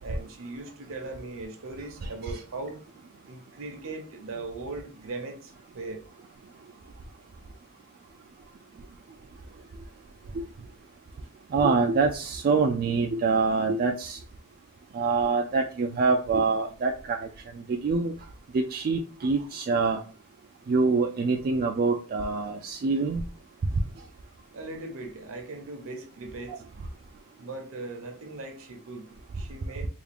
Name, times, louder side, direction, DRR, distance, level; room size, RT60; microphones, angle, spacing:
voice 1, 0.0-2.8 3.3-6.0 24.5-26.6 27.4-29.9, right 2 dB, 65° right, 0.8 m, -39 dB
voice 2, 11.5-14.2 14.9-17.3 17.7-18.1 18.5-20.0 20.7-23.2 26.5-26.6, right 4 dB, 40° right, 0.3 m, -25 dB
3.5 x 2.4 x 3.4 m
head